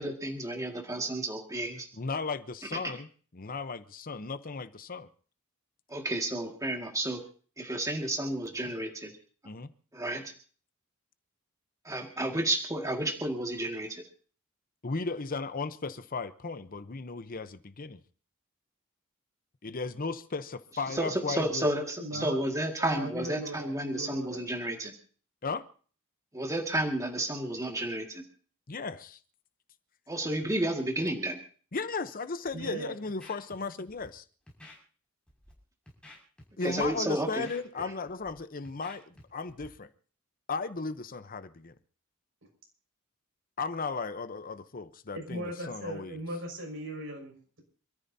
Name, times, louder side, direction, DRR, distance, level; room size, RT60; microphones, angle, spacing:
voice 1, 0.0-1.9 5.9-7.2 7.6-9.1 9.9-10.3 11.8-14.0 20.9-24.9 26.3-28.2 30.1-31.4 36.6-37.5, right 1 dB, 15° right, 2.0 m, -31 dB
voice 2, 2.0-3.1 3.3-5.1 9.4-9.7 14.8-18.0 19.6-21.7 22.1-22.3 25.4-25.6 28.7-29.2 31.7-34.2 36.6-39.9 40.5-41.7 43.6-46.2, left 4 dB, 45° left, 0.8 m, -36 dB
voice 3, 22.0-22.4 22.8-24.5 32.5-33.0 45.1-47.6, right 1 dB, 65° right, 6.3 m, -38 dB
Scratching (performance technique), 32.4-32.7 33.1-33.6 33.9-34.1 34.5-34.8 35.3-35.5 35.9-36.4 36.7-36.9 37.2-38.3 38.6-39.2 39.5-39.7, left 1 dB, 5° left, 6.0 m, -51 dB
27.5 x 14.0 x 2.8 m
head